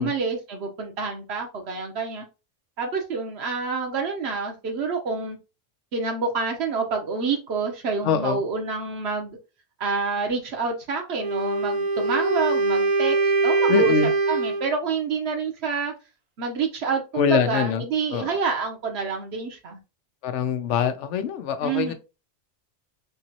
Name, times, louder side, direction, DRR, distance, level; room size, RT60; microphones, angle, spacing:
voice 1, 0.0-2.2 2.8-5.4 5.9-9.4 9.8-15.9 16.4-19.8 21.6-21.9, right 4 dB, 65° right, 1.1 m, -28 dB
voice 2, 8.0-8.4 13.7-14.1 17.1-17.8 18.1-18.4 20.2-21.9, left 7 dB, 80° left, 0.9 m, -24 dB
Wind instrument woodwind instrument, 11.2-14.7, right 3 dB, 45° right, 0.6 m, -22 dB
3.7 x 2.9 x 2.7 m
omnidirectional pair, 1.2 m